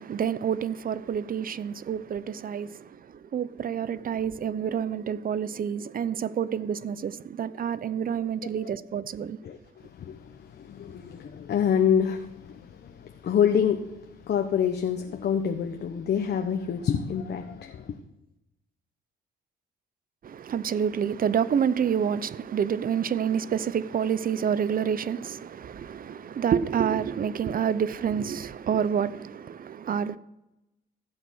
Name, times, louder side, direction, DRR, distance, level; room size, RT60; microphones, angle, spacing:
voice 1, 0.0-9.4 20.2-30.2, right 8 dB, 45° right, 0.7 m, -28 dB
voice 2, 9.4-18.0, left 8 dB, 60° left, 1.2 m, -27 dB
15.0 x 8.1 x 6.4 m
cardioid pair, 90°, 20 cm